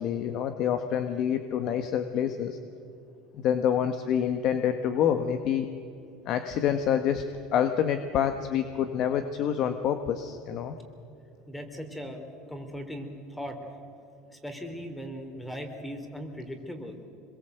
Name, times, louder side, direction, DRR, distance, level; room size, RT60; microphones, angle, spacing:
voice 1, 0.0-2.6 3.4-5.7 6.2-7.2 7.5-10.8, left 9 dB, 50° left, 8 dB, 1.4 m, -27 dB
voice 2, 11.5-13.6 14.3-17.0, equal, 5° left, 6 dB, 3.4 m, -38 dB
26.0 x 22.0 x 8.1 m, 2.6 s
supercardioid pair, 130°, 0 cm